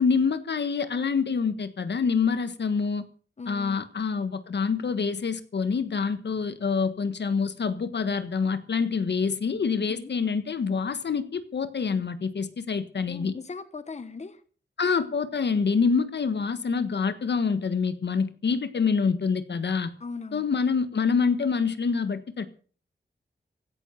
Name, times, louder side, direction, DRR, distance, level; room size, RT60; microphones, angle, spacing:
voice 1, 0.0-3.1 3.5-13.3 14.8-19.9 20.3-22.5, left 5 dB, 75° left, 11 dB, 1.5 m, -26 dB
voice 2, 3.4-3.9 9.9-10.1 13.1-14.4 20.0-20.5, left 4 dB, 40° left, 12 dB, 1.2 m, -38 dB
16.0 x 11.5 x 5.8 m, 0.40 s
wide cardioid pair, 120°, 18 cm